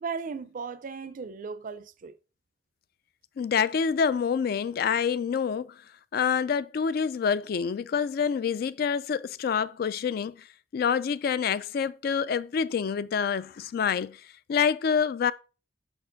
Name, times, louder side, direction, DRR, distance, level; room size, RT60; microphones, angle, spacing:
voice 1, 0.0-2.1, right 5 dB, 50° right, 0.4 m, -36 dB
voice 2, 3.4-5.8 6.1-10.4 10.7-14.2 14.5-15.3, left 6 dB, 55° left, 0.3 m, -27 dB
5.7 x 4.3 x 3.9 m
head